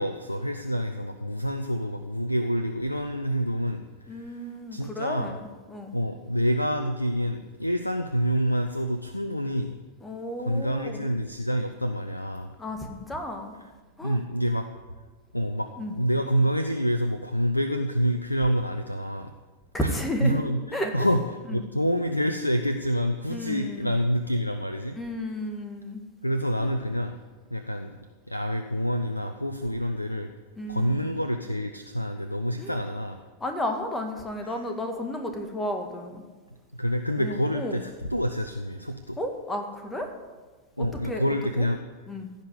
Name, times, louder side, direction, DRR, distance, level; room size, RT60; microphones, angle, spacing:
voice 1, 0.0-3.8 4.1-4.4 4.7-5.4 5.9-9.8 10.4-12.5 14.0-14.7 15.3-19.3 19.8-19.9 20.2-25.0 26.2-27.2 27.5-27.9 28.3-30.3 30.7-33.2 34.4-34.6 36.8-39.2 40.8-41.8, equal, 85° left, 8 dB, 0.5 m, -27 dB
voice 2, 4.1-5.9 10.0-11.1 12.6-13.5 14.0-14.2 15.8-15.9 19.7-20.4 20.7-21.1 23.3-23.9 24.9-26.0 26.6-26.7 30.6-31.1 32.6-32.8 33.4-36.2 37.2-37.8 39.2-40.1 40.8-41.7 42.1-42.3, left 1 dB, 10° left, 4 dB, 1.7 m, -33 dB
16.0 x 5.3 x 8.0 m, 1.3 s
figure-of-eight pair, 90°, 0 cm